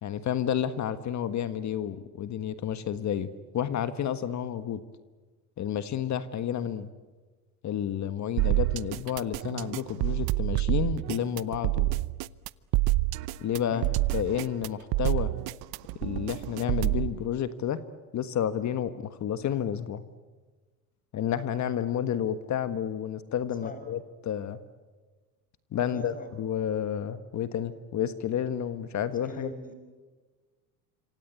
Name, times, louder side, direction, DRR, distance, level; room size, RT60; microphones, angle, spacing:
voice 1, 0.0-3.3 3.5-4.8 5.6-6.9 7.6-12.0 13.4-13.8 14.1-15.3 16.0-17.8 18.1-20.0 21.1-24.6 25.7-29.5, left 9 dB, 40° left, 12 dB, 1.5 m, -30 dB
sound 1, 8.4-17.1, right 20 dB, 55° right, 0.8 m, -28 dB
voice 2, 25.8-26.3 29.2-29.7, left 2 dB, 20° left, 8 dB, 6.4 m, -42 dB
26.5 x 26.0 x 8.3 m, 1.3 s
supercardioid pair, 95°, 43 cm